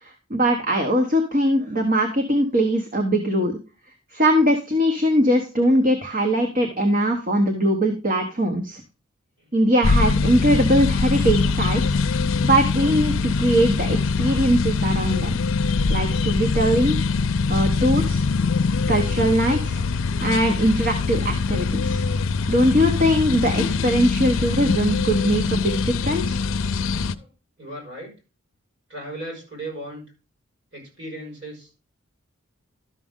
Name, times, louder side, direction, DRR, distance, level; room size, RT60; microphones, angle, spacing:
voice 1, 0.0-3.6 4.1-8.8 9.5-12.0 12.4-15.3 15.9-17.0 17.5-18.2 18.9-22.0 22.5-26.4, equal, 40° right, 4 dB, 1.1 m, -21 dB
sound 1, 9.8-27.1, left 4 dB, 80° left, 0.5 m, -23 dB
voice 2, 26.9-27.3 27.6-28.1 28.9-30.0 30.7-31.7, right 1 dB, 60° right, -1 dB, 5.6 m, -37 dB
12.5 x 6.3 x 3.7 m, 0.31 s
head